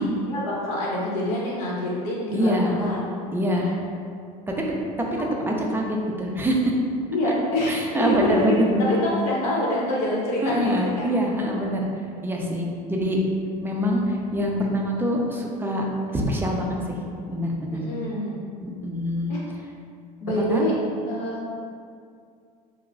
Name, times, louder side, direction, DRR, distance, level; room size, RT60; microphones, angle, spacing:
voice 1, 0.0-3.0 3.6-3.7 7.1-8.5 8.8-11.1 17.7-18.4 19.3-19.4 20.2-20.8 21.1-21.4, left 1 dB, 75° left, -6 dB, 0.8 m, -26 dB
voice 2, 2.3-2.8 3.3-3.7 4.5-4.6 5.0-5.1 5.5-6.8 7.2-7.3 7.7-9.0 10.4-11.9 12.2-13.2 13.6-15.8 16.1-17.0 17.3-17.8 18.6-19.3 20.4-20.6, equal, 10° right, -1 dB, 0.4 m, -25 dB
2.2 x 2.0 x 3.8 m, 2.3 s
hypercardioid pair, 85°, 20 cm